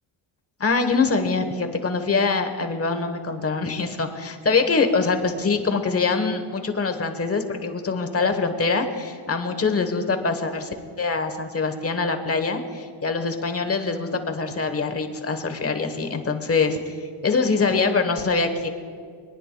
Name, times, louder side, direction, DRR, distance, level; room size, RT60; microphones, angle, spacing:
voice 1, 0.6-10.7 11.0-17.0 17.2-18.7, left 4 dB, 30° left, 7 dB, 1.2 m, -24 dB
25.5 x 9.9 x 2.3 m, 2.1 s
cardioid pair, 95°, 47 cm